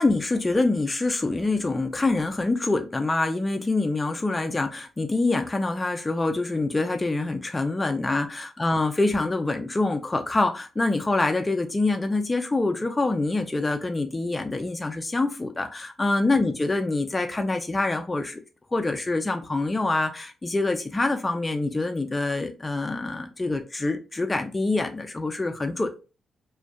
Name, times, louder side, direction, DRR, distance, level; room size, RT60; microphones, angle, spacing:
voice 1, 0.0-18.4 18.7-26.0, left 2 dB, 25° left, 0.3 m, -25 dB
2.5 x 2.2 x 2.2 m
cardioid pair, 65°, 0 cm